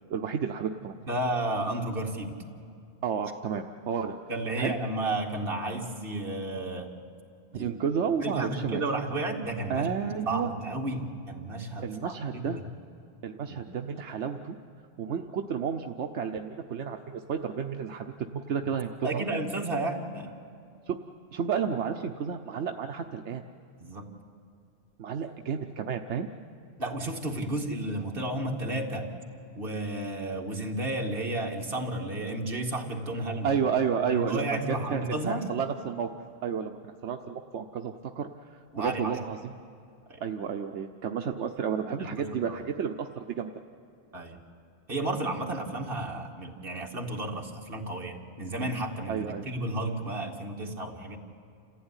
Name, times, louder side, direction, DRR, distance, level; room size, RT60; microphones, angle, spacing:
voice 1, 0.1-0.9 3.0-4.1 4.6-4.7 7.5-8.8 9.7-10.5 11.8-12.6 13.2-14.6 15.0-19.2 20.9-21.0 21.3-23.4 25.0-26.3 33.4-34.6 34.9-36.1 36.4-39.5 40.2-43.5 49.1-49.5, right 7 dB, 85° right, 4 dB, 1.1 m, -31 dB
voice 2, 1.0-2.4 4.3-6.9 7.5-7.7 8.2-9.9 10.3-12.5 13.5-13.6 19.0-20.3 23.8-24.1 26.8-29.1 29.6-33.5 34.1-35.4 38.7-39.3 40.1-40.2 42.0-42.6 44.1-44.4 44.9-51.2, right 2 dB, 55° right, 1 dB, 2.3 m, -32 dB
28.0 x 15.0 x 9.8 m, 2.4 s
omnidirectional pair, 1.1 m